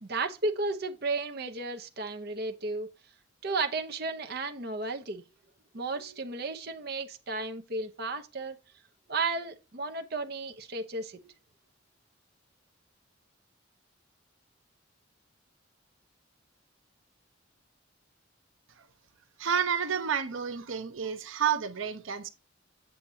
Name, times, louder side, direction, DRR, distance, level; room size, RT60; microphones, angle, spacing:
voice 1, 0.0-2.9 3.4-5.2 5.7-8.6 9.1-11.3, right 3 dB, 55° right, 0.8 m, -33 dB
voice 2, 19.4-22.3, right 7 dB, 85° right, 0.7 m, -30 dB
7.8 x 7.7 x 2.8 m
head